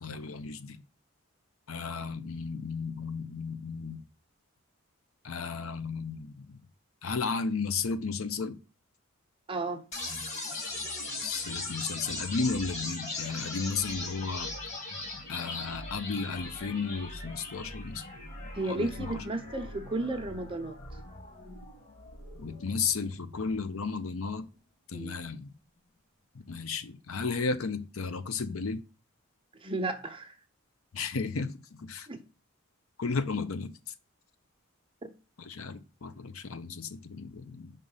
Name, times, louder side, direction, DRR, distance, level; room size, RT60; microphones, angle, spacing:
voice 1, 0.0-0.8 1.7-4.0 5.2-6.6 7.0-8.6 11.2-14.5 15.3-18.0 18.7-19.2 22.4-24.5 24.9-25.5 26.3-28.8 30.9-31.5 31.8-32.1 33.0-33.7 35.4-37.7, left 4 dB, 90° left, 0.7 m, -34 dB
voice 2, 9.5-9.8 18.5-20.8 24.9-25.1 29.6-30.3 32.1-32.2 35.0-35.1, right 2 dB, 25° right, 0.8 m, -33 dB
sound 1, 9.9-23.9, left 2 dB, 35° left, 2.0 m, -40 dB
5.3 x 3.8 x 5.5 m
head